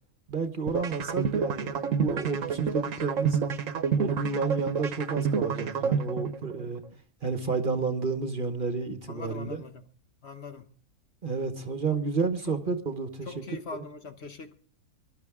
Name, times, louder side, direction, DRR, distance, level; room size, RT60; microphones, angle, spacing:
voice 1, 0.3-3.4 4.0-6.8 7.2-9.6 11.2-13.4 13.7-13.8, right 4 dB, 40° right, 1.2 m, -31 dB
sound 1, 0.7-6.7, right 6 dB, 65° right, 1.3 m, -28 dB
voice 2, 9.1-9.8 10.2-10.7 12.4-12.5 13.3-14.6, left 4 dB, 50° left, 1.2 m, -41 dB
24.5 x 12.0 x 3.6 m
omnidirectional pair, 1.5 m